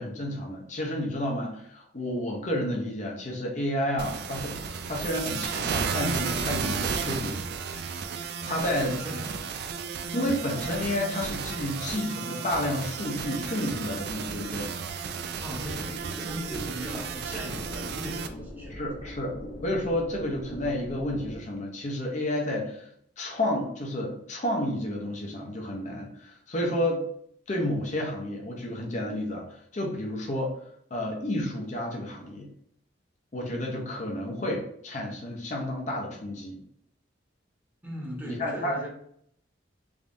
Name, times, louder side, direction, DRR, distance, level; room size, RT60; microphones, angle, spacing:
voice 1, 0.0-4.6 4.9-7.4 8.0-8.9 10.1-14.7 18.7-19.3 19.6-22.9 23.2-27.0 27.5-30.5 30.9-32.5 33.3-36.6 38.3-38.8, left 1 dB, 40° left, 0 dB, 0.6 m, -31 dB
sound 1, 4.0-18.3, right 5 dB, 60° right, 0.3 m, -33 dB
voice 2, 8.4-9.5 9.7-10.0 15.4-19.1 37.8-38.9, equal, 10° right, -3 dB, 0.9 m, -39 dB
sound 2, 15.5-21.4, equal, 85° left, 0.8 m, -41 dB
3.5 x 3.1 x 2.6 m, 0.69 s
head